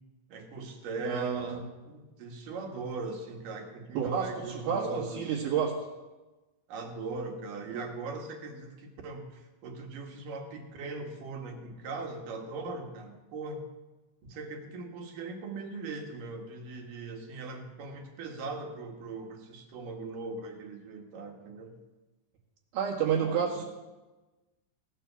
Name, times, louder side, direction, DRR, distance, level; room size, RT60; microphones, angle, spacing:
voice 1, 0.3-5.5 6.7-13.6 14.2-21.8 23.1-23.6, right 3 dB, 70° right, 3 dB, 3.2 m, -40 dB
voice 2, 1.0-1.6 4.0-5.7 22.7-23.6, right 7 dB, 85° right, -4 dB, 3.7 m, -30 dB
16.5 x 10.0 x 7.0 m, 1.1 s
omnidirectional pair, 4.1 m